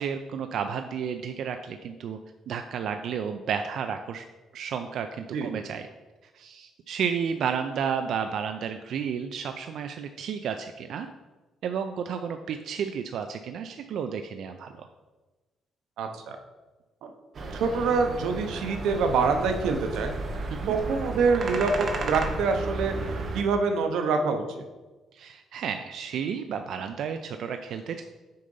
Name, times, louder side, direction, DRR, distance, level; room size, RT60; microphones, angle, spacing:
voice 1, 0.0-2.2 2.5-4.2 4.5-5.9 6.3-11.1 11.6-14.9 20.5-20.7 25.1-28.0, right 7 dB, 60° right, 7 dB, 0.3 m, -32 dB
voice 2, 16.0-16.4 17.0-17.1 17.5-20.1 20.7-24.4, right 4 dB, 90° right, 6 dB, 0.8 m, -25 dB
sound 1, 17.3-23.4, right 3 dB, 40° right, 0.8 m, -33 dB
6.6 x 3.9 x 5.4 m, 1.2 s
cardioid pair, 165°, 0 cm